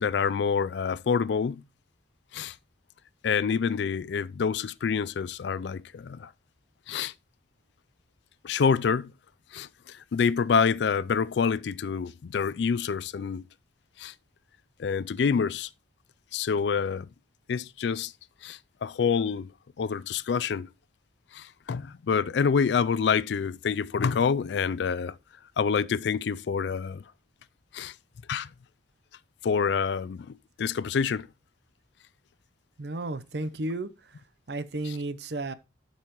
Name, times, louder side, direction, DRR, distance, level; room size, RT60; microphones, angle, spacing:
voice 1, 0.0-1.6 2.3-2.6 3.2-6.3 6.9-7.1 8.4-9.1 9.5-13.4 14.0-14.1 14.8-15.7 16.3-17.1 17.5-18.1 18.4-19.5 19.8-20.7 21.3-25.2 25.6-27.0 27.7-27.9 28.3-28.5 29.4-31.3, left 6 dB, 70° left, 0.4 m, -27 dB
voice 2, 32.8-34.2 34.5-35.5, right 2 dB, 65° right, 0.7 m, -33 dB
12.5 x 5.5 x 3.0 m
head